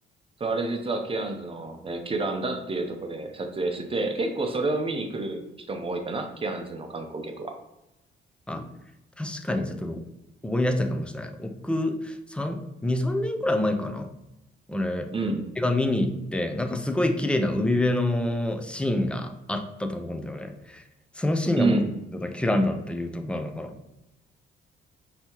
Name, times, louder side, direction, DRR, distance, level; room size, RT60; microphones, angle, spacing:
voice 1, 0.4-5.4 5.7-7.5 15.1-15.5 21.5-21.9, right 2 dB, 30° right, 4 dB, 0.7 m, -29 dB
voice 2, 9.2-10.0 10.4-14.1 14.7-15.1 15.6-20.8 21.2-21.7 22.2-23.7, left 1 dB, 5° left, 6 dB, 0.5 m, -27 dB
5.3 x 2.9 x 3.0 m, 0.92 s
cardioid pair, 90°, 20 cm